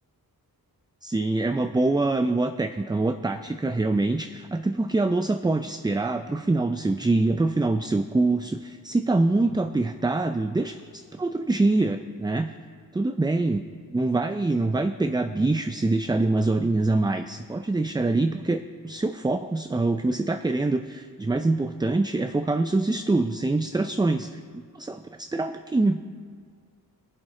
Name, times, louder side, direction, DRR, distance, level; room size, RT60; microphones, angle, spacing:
voice 1, 1.0-12.5 12.9-13.6 13.9-26.0, right 2 dB, 10° right, 8 dB, 0.3 m, -25 dB
22.5 x 7.7 x 3.7 m, 2.1 s
wide cardioid pair, 105°, 38 cm